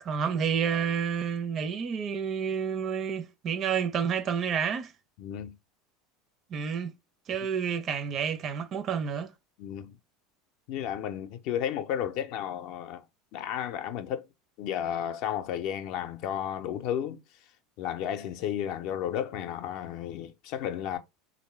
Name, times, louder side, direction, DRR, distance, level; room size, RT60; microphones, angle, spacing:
voice 1, 0.0-4.9 6.5-6.9 7.3-9.3, right 7 dB, 40° right, 0.5 m, -29 dB
voice 2, 5.2-5.6 9.6-10.0 10.7-13.0 13.3-14.3 14.6-17.2 17.8-21.0, left 10 dB, 60° left, 0.5 m, -33 dB
3.2 x 2.6 x 3.1 m
hypercardioid pair, 85°, 0 cm